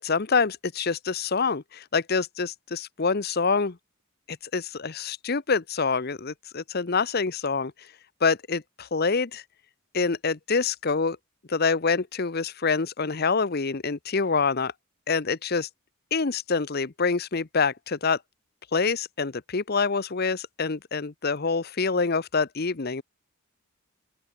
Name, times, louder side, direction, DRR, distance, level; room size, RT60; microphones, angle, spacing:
voice 1, 0.0-3.8 4.3-7.7 8.2-9.4 9.9-11.2 11.5-14.7 15.1-15.7 16.1-18.2 18.7-23.0, left 4 dB, 45° left, 0.8 m, -26 dB
open air
head